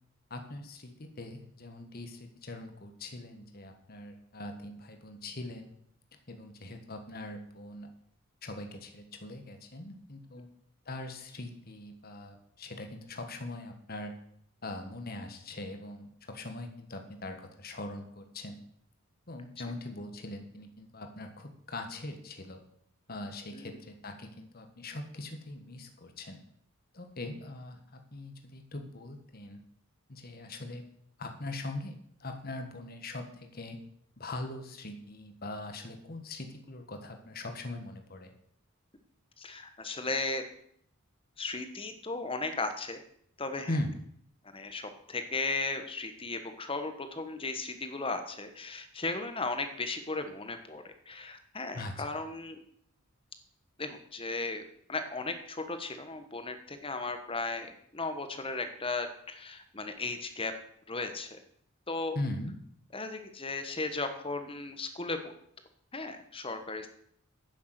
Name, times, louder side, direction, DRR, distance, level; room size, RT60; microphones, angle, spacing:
voice 1, 0.3-5.7 6.3-7.9 8.4-10.5 10.8-14.1 14.6-18.6 19.3-22.6 23.1-26.4 26.9-29.6 30.1-30.8 31.2-33.8 34.2-38.3 43.7-44.0 51.7-52.1 62.1-62.5, left 2 dB, 45° left, 5 dB, 1.6 m, -41 dB
voice 2, 39.4-40.4 41.4-43.0 43.4-43.7 44.5-52.6 53.8-60.5 60.9-61.4 61.9-62.2 62.9-65.3 65.9-66.9, left 3 dB, 25° left, 8 dB, 1.3 m, -36 dB
10.0 x 7.2 x 8.1 m, 0.67 s
head